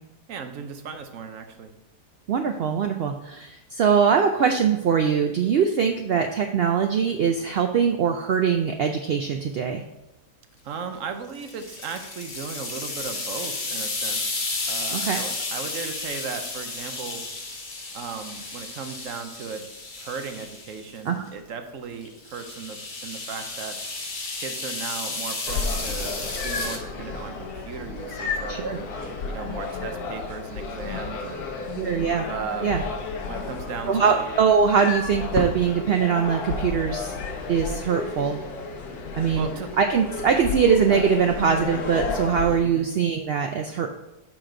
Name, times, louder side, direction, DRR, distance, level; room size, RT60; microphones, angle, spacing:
voice 1, 0.3-1.7 10.6-17.2 17.9-19.7 20.0-23.8 24.4-26.1 26.4-28.9 29.3-31.5 32.3-32.7 33.3-34.2 39.3-39.7 42.6-42.8, right 5 dB, 65° right, 6 dB, 1.0 m, -36 dB
voice 2, 2.3-9.8 14.9-15.2 21.0-21.2 28.5-28.8 31.7-32.3 32.6-32.8 33.9-37.1 37.5-38.4 39.1-39.5 39.8-43.9, right 6 dB, 90° right, 5 dB, 0.5 m, -22 dB
sound 1, 11.3-20.9 22.0-26.8, left 3 dB, 35° left, 1.0 m, -33 dB
sound 2, 25.5-42.6, left 4 dB, 85° left, 1.4 m, -32 dB
7.3 x 4.9 x 3.8 m, 0.95 s
omnidirectional pair, 1.6 m